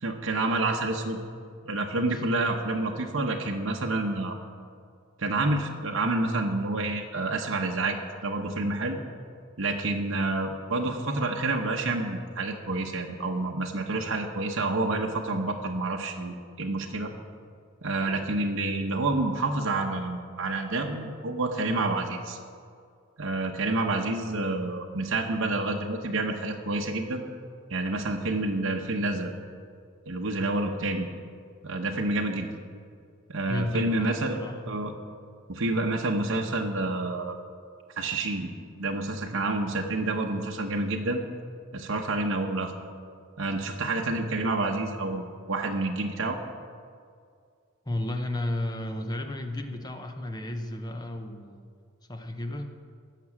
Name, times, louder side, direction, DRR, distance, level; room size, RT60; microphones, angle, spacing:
voice 1, 0.0-1.2 1.6-4.4 5.2-8.0 8.2-9.0 9.6-17.1 17.8-22.4 23.2-27.2 27.7-29.3 30.1-31.1 31.6-32.5 33.3-34.9 35.5-37.4 38.0-38.5 38.8-41.2 41.7-42.7 43.4-46.4, right 2 dB, 70° right, 1 dB, 1.0 m, -28 dB
voice 2, 33.5-34.6 47.9-51.7 52.1-52.7, left 1 dB, 20° left, 5 dB, 0.7 m, -33 dB
16.0 x 6.0 x 7.3 m, 2.2 s
head